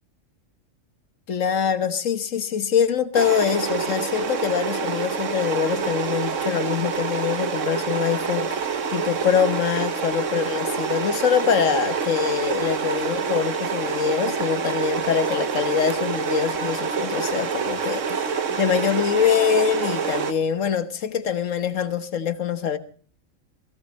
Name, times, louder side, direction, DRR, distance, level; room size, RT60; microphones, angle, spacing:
voice 1, 1.3-22.8, left 7 dB, 85° left, 12 dB, 1.6 m, -24 dB
sound 1, 3.1-20.3, right 6 dB, 80° right, 1.6 m, -27 dB
17.5 x 17.0 x 4.2 m, 0.42 s
omnidirectional pair, 1.3 m